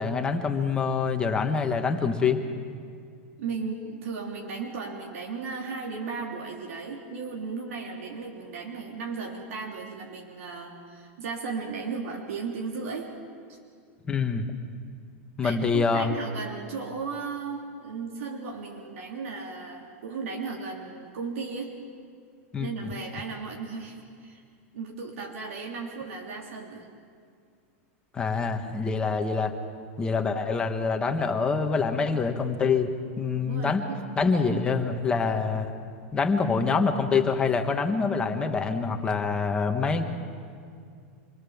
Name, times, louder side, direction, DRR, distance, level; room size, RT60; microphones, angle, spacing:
voice 1, 0.0-2.4 14.1-14.4 15.4-16.0 22.5-22.9 28.1-29.5 30.0-32.9 33.2-33.9 34.2-35.7 36.1-40.0, left 5 dB, 10° left, 5 dB, 1.4 m, -25 dB
voice 2, 3.4-13.1 13.5-13.6 15.4-21.8 22.6-24.4 24.7-26.9 33.4-34.0 34.4-34.6, right 4 dB, 75° right, -1 dB, 3.2 m, -35 dB
27.0 x 21.5 x 7.2 m, 2.3 s
supercardioid pair, 165°, 7 cm